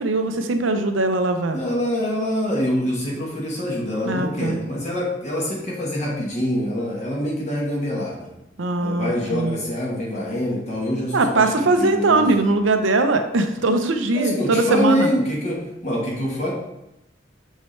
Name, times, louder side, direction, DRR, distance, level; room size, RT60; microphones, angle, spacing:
voice 1, 0.0-1.6 4.1-4.6 8.6-9.6 11.1-15.1, right 2 dB, 85° right, 7 dB, 0.7 m, -20 dB
voice 2, 1.5-8.3 8.8-12.5 14.1-16.5, equal, 35° left, -4 dB, 1.2 m, -25 dB
6.6 x 6.3 x 3.2 m, 0.87 s
head